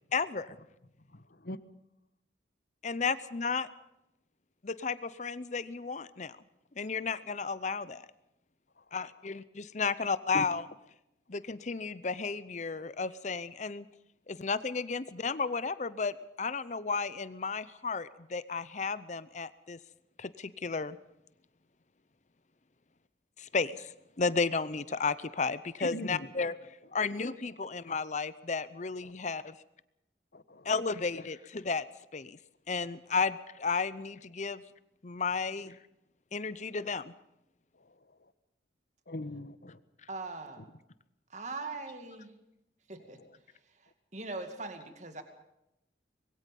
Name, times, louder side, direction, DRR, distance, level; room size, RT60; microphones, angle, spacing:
voice 1, 0.1-0.6 2.8-3.7 4.6-6.4 6.8-8.1 8.9-10.6 11.3-13.9 14.3-19.8 20.2-21.0 23.4-23.9 24.2-26.5 26.9-29.6 30.6-31.8 32.1-32.4 32.7-34.6 35.0-35.8 36.3-37.1, left 4 dB, 40° left, 16 dB, 0.7 m, -33 dB
voice 2, 1.1-1.6 8.8-9.4 10.0-10.1 10.3-10.5 25.8-26.3 29.0-29.1 30.3-30.7 31.2-31.3 36.6-36.7 37.7-38.3 39.1-39.8 40.6-40.7 43.0-43.4, left 2 dB, 60° left, 13 dB, 1.2 m, -42 dB
voice 3, 40.1-40.6 41.3-42.3 42.9-43.2 44.1-45.2, right 3 dB, 40° right, 7 dB, 2.3 m, -40 dB
25.0 x 21.5 x 5.4 m, 0.85 s
head